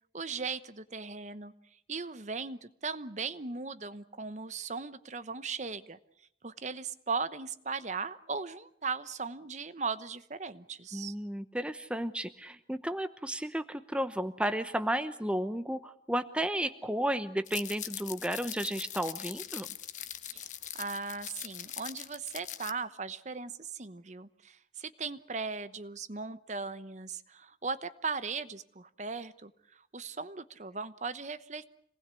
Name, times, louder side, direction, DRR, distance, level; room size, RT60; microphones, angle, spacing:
voice 1, 0.1-1.5 1.9-6.0 6.4-11.1 20.3-20.5 20.7-31.7, right 4 dB, 40° right, 12 dB, 1.0 m, -38 dB
voice 2, 10.9-19.7, right 1 dB, 5° right, 10 dB, 0.9 m, -33 dB
sound 1, 17.5-22.7, left 11 dB, 45° left, 1.2 m, -41 dB
26.5 x 19.5 x 8.4 m, 0.69 s
head